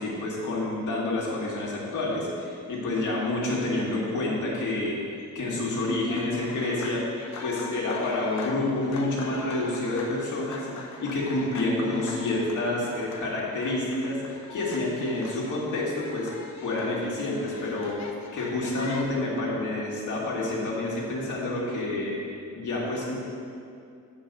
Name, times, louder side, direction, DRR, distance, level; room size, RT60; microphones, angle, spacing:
voice 1, 0.0-5.0 5.3-7.0 7.4-10.7 11.0-16.3 16.6-18.0 18.3-23.2, left 2 dB, 80° left, -5 dB, 2.1 m, -28 dB
sound 1, 6.1-19.1, left 4 dB, 60° left, 0.8 m, -42 dB
7.2 x 5.2 x 6.8 m, 2.4 s
wide cardioid pair, 165°, 30 cm